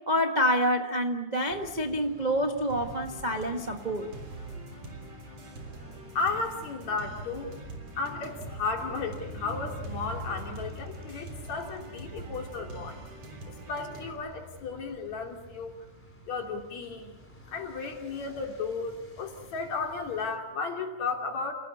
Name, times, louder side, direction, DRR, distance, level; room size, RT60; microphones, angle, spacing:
voice 1, 0.0-4.1, equal, 30° right, 3 dB, 0.8 m, -27 dB
sound 1, 1.5-20.4, left 1 dB, 5° left, 3.6 m, -48 dB
sound 2, 2.7-14.1, right 2 dB, 50° right, 4.4 m, -44 dB
voice 2, 6.2-7.5 8.0-12.9 13.7-15.7 16.3-17.1 17.5-18.9 19.2-21.5, left 4 dB, 65° left, 3 dB, 4.0 m, -34 dB
29.5 x 18.5 x 8.4 m, 1.1 s
omnidirectional pair, 3.5 m